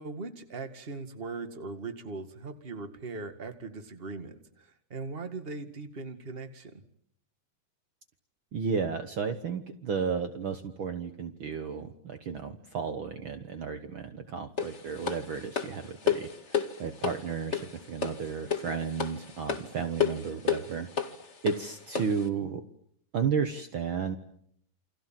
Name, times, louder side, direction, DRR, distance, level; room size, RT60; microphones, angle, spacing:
voice 1, 0.0-6.8, right 3 dB, 25° right, 8 dB, 1.2 m, -40 dB
voice 2, 8.5-20.9 21.4-22.6 23.1-24.2, right 6 dB, 80° right, 8 dB, 1.1 m, -33 dB
sound 1, 14.6-22.3, left 6 dB, 30° left, 1.5 m, -32 dB
29.0 x 26.0 x 7.6 m, 0.70 s
omnidirectional pair, 4.3 m